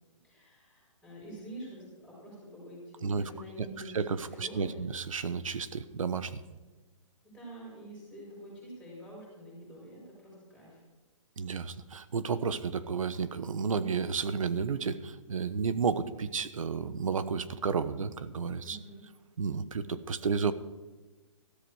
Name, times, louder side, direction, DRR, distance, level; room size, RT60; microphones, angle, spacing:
voice 1, 0.2-3.9 4.3-4.8 7.2-10.8 18.6-19.1, right 1 dB, ahead, -6 dB, 5.2 m, -47 dB
voice 2, 3.9-6.4 11.4-18.8 19.4-20.5, right 5 dB, 80° right, 13 dB, 1.2 m, -32 dB
14.0 x 13.5 x 4.9 m, 1.2 s
hypercardioid pair, 170°, 17 cm